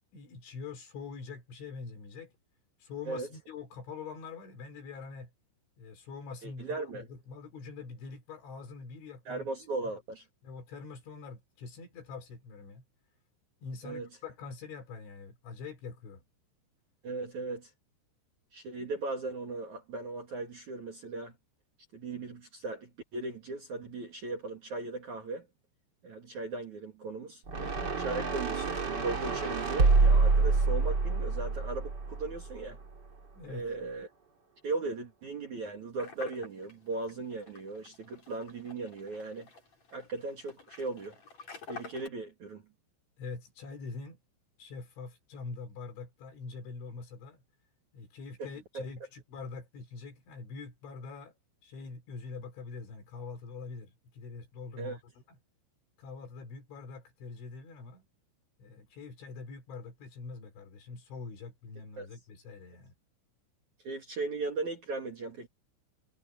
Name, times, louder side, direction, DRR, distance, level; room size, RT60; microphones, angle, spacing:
voice 1, 0.1-2.3 2.8-5.3 5.8-9.5 10.4-12.8 13.6-16.2 33.3-33.7 43.2-44.2 44.6-47.4 47.9-51.3 51.6-55.0 56.0-58.1 58.6-62.9, left 4 dB, 65° left, 6.8 m, -44 dB
voice 2, 6.4-7.1 9.2-10.3 13.8-14.1 17.0-17.7 18.5-21.3 21.9-25.5 26.0-27.4 28.0-32.8 33.5-34.1 34.6-39.5 39.9-41.2 41.7-42.6 48.4-48.5 48.7-48.8 54.8-55.0 62.0-62.1 63.8-65.5, right 3 dB, 45° right, 3.0 m, -37 dB
sound 1, 27.5-32.7, right 4 dB, 30° right, 2.3 m, -27 dB
sound 2, 36.0-42.1, left 4 dB, 30° left, 7.1 m, -49 dB
omnidirectional pair, 6.0 m